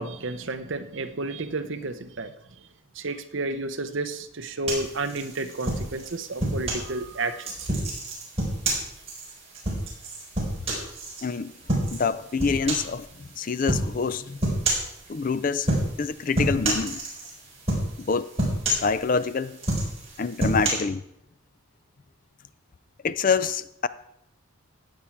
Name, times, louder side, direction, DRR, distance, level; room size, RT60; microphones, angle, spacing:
voice 1, 0.0-2.3 3.0-7.7, right 2 dB, 55° right, 0.8 m, -31 dB
sound 1, 4.7-6.9 7.4-11.2 11.7-12.1 12.4-13.0 13.7-13.9 14.4-14.9 15.6-16.1 16.3-17.3 17.7-18.1 18.4-19.2 19.6-20.7, right 1 dB, 30° right, 4.5 m, -27 dB
voice 2, 11.2-11.5 11.9-14.4 15.1-15.7 16.0-17.0 18.0-18.3 18.7-19.6 20.2-21.0 23.0-23.9, left 5 dB, 40° left, 0.4 m, -26 dB
15.5 x 8.8 x 4.6 m
head